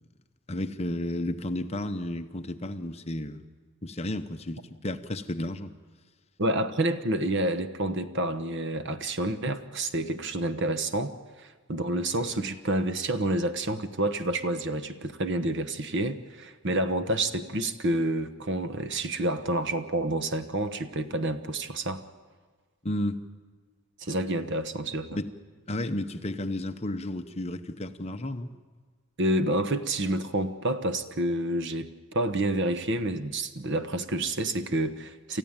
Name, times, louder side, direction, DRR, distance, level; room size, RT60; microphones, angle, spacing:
voice 1, 0.5-3.4 3.8-5.7 22.8-23.2 25.1-25.3 25.7-28.5, left 1 dB, 30° left, 8 dB, 0.9 m, -32 dB
voice 2, 6.4-11.1 11.4-22.0 24.0-25.2 29.2-35.4, right 1 dB, 55° right, 11 dB, 1.1 m, -29 dB
28.5 x 14.5 x 8.9 m, 1.5 s
head